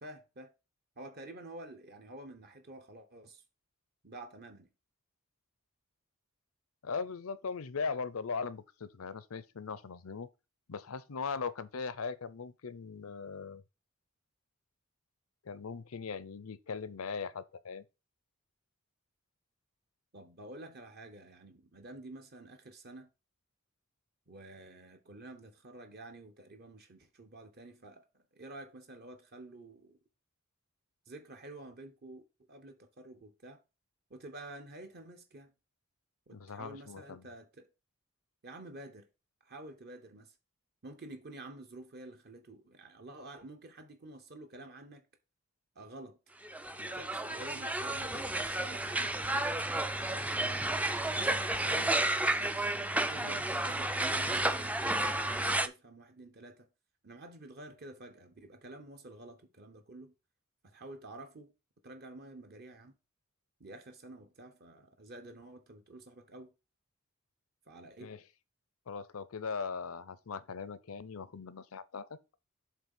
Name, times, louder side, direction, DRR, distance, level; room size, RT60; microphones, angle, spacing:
voice 1, 0.0-0.5 1.0-3.4 4.0-4.7 20.1-23.1 24.3-30.0 31.1-32.2 32.5-33.6 34.1-35.5 36.3-37.7 38.4-39.1 39.4-40.3 40.8-45.1 45.7-46.2 46.8-49.5 50.4-52.0 53.1-56.7 57.0-60.1 60.6-61.5 61.8-62.9 63.6-66.5 67.7-68.1, right 2 dB, 50° right, 0.9 m, -50 dB
voice 2, 6.8-10.3 10.7-13.6 15.4-17.8 36.3-37.2 53.2-53.4 68.0-68.2 68.9-72.0, left 5 dB, 80° left, 0.6 m, -39 dB
sound 1, 46.4-55.7, right 1 dB, 5° right, 0.4 m, -32 dB
7.6 x 3.2 x 5.5 m
head